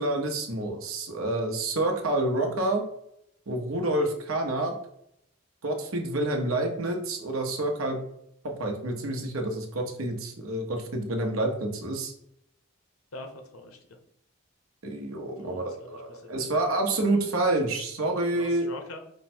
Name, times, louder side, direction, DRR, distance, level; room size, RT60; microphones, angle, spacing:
voice 1, 0.0-2.8 3.5-4.7 5.6-8.0 8.4-12.1 14.8-18.7, right 2 dB, 80° right, 3 dB, 0.9 m, -28 dB
voice 2, 13.1-14.0 15.4-16.6 17.1-17.5 18.3-19.0, left 2 dB, 85° left, 4 dB, 0.9 m, -44 dB
5.4 x 2.2 x 4.3 m, 0.75 s
head